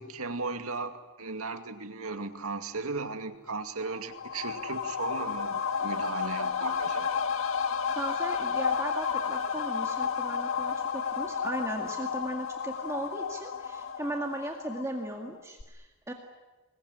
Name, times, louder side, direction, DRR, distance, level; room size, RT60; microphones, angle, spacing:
voice 1, 0.0-7.3, right 3 dB, 80° right, 7 dB, 2.3 m, -36 dB
sound 1, 3.8-15.3 15.6-15.7, left 6 dB, 65° left, 1.8 m, -32 dB
voice 2, 7.9-16.1, right 1 dB, 15° right, 1 dB, 2.0 m, -37 dB
25.5 x 21.0 x 9.9 m, 1.2 s
head